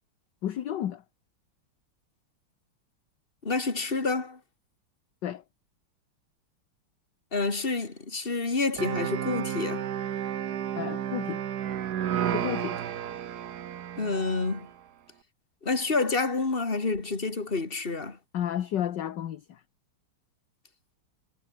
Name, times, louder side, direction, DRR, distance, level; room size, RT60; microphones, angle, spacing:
voice 1, 0.4-1.0 5.2-5.4 10.8-11.4 12.3-12.8 18.3-19.6, left 10 dB, 60° left, 1.6 m, -32 dB
voice 2, 3.4-4.4 7.3-9.9 14.0-14.7 15.6-18.2, left 3 dB, 25° left, 2.8 m, -28 dB
sound 1, 8.8-14.7, right 10 dB, 55° right, 1.4 m, -32 dB
omnidirectional pair, 2.4 m